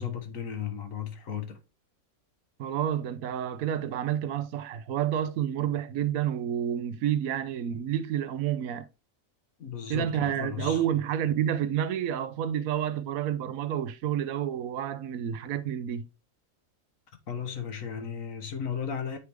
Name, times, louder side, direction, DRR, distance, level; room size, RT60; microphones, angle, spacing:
voice 1, 0.0-1.6 9.6-10.8 17.3-19.2, left 8 dB, 70° left, 1.6 m, -35 dB
voice 2, 2.6-8.9 9.9-16.1, right 10 dB, 75° right, 1.0 m, -29 dB
8.4 x 4.7 x 3.4 m
omnidirectional pair, 1.5 m